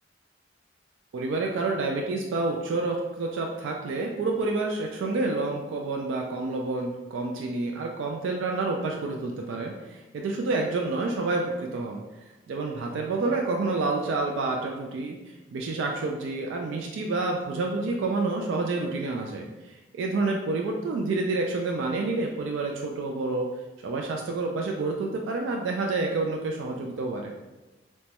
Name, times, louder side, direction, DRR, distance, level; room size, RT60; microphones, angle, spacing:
voice 1, 1.1-12.0 12.5-23.5 23.8-27.3, right 3 dB, 85° right, 1 dB, 0.3 m, -29 dB
3.0 x 2.2 x 2.8 m, 1.1 s
head